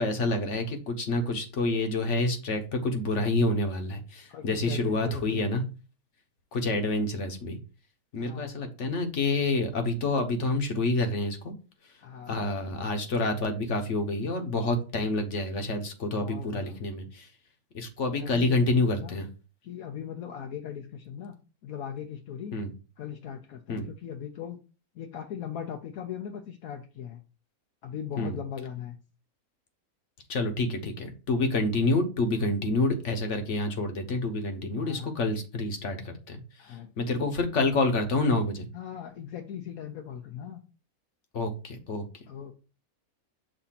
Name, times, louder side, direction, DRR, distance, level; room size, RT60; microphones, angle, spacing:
voice 1, 0.0-5.6 6.5-7.6 8.1-11.5 12.3-17.3 17.7-19.3 22.5-22.7 23.7-23.9 28.2-28.4 30.3-36.4 36.7-38.7 41.3-42.0, left 2 dB, 55° left, 6 dB, 1.3 m, -28 dB
voice 2, 4.3-5.4 8.2-8.5 12.0-12.4 16.2-16.8 18.1-19.2 19.6-21.3 21.6-22.6 23.0-24.6 24.9-27.2 27.8-29.0 30.8-30.9 34.8-35.1 36.6-37.4 38.7-40.6 42.3-42.5, left 8 dB, 75° left, 3 dB, 1.1 m, -39 dB
6.6 x 2.7 x 5.7 m, 0.33 s
omnidirectional pair, 1.5 m